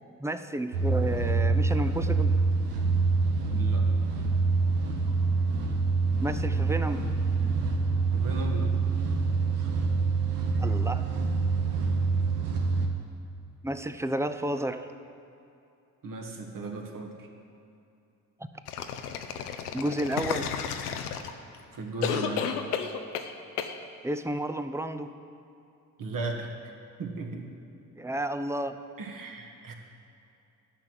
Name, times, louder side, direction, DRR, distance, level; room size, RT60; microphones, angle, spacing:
voice 1, 0.2-2.3 6.2-7.0 10.6-11.0 13.6-14.9 18.4-18.5 19.7-20.5 24.0-25.1 28.0-28.8, right 1 dB, 5° right, 10 dB, 0.5 m, -31 dB
sound 1, 0.7-12.9, right 4 dB, 85° right, 0.9 m, -26 dB
voice 2, 3.5-3.8 8.1-8.7 16.0-17.3 21.7-22.5 26.0-26.5 27.0-27.5 29.0-29.7, right 3 dB, 45° right, 2 dB, 1.6 m, -36 dB
sound 2, 18.7-21.6 22.0-23.3 23.6-23.7, left 8 dB, 85° left, 0.6 m, -32 dB
11.0 x 5.9 x 7.8 m, 2.7 s
figure-of-eight pair, 45°, 45 cm